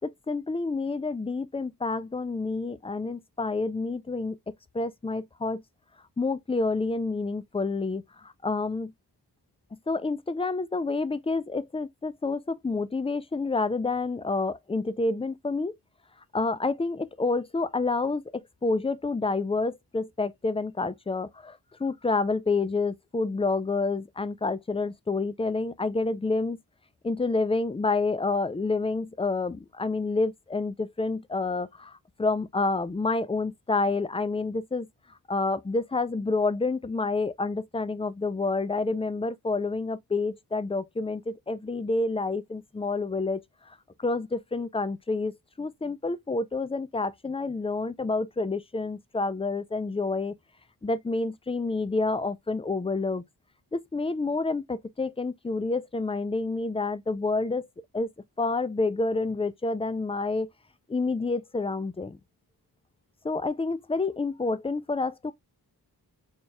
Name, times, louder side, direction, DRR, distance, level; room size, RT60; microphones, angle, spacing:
voice 1, 0.0-4.4 4.7-5.6 6.2-8.9 9.9-15.7 16.3-26.6 27.0-34.9 35.3-43.4 43.7-43.8 44.0-50.3 50.8-53.2 53.7-57.7 57.9-58.1 58.4-60.5 60.9-62.2 63.2-65.3, left 3 dB, 15° left, 0.3 m, -28 dB
4.3 x 3.3 x 2.2 m
wide cardioid pair, 95°, 40 cm